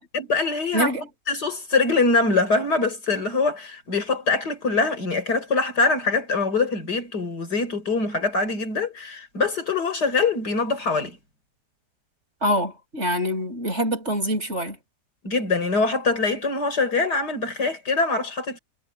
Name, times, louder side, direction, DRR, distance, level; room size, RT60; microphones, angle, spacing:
voice 1, 0.1-0.9 1.3-11.2 15.2-18.6, left 3 dB, 85° left, 5.6 m, -23 dB
voice 2, 0.7-1.1 12.4-14.8, equal, 40° right, 7.3 m, -25 dB
omnidirectional pair, 1.7 m